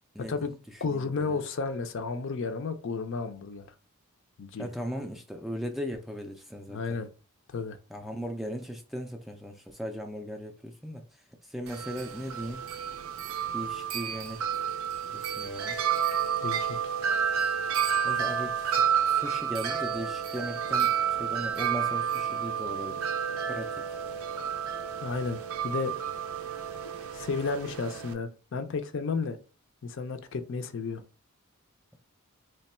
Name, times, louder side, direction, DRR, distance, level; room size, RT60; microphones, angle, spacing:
voice 1, 0.1-1.4 4.6-7.0 7.9-12.6 13.5-14.4 15.1-15.8 18.0-23.1 23.5-23.8, equal, ahead, 0.3 m, -38 dB
voice 2, 0.8-3.7 4.4-4.7 6.7-7.1 7.5-7.8 16.4-16.8 25.0-25.9 27.1-29.4 29.8-31.0, left 4 dB, 60° left, 0.5 m, -32 dB
Wind chime, 11.7-28.1, right 8 dB, 70° right, 0.5 m, -30 dB
3.1 x 2.2 x 4.2 m
head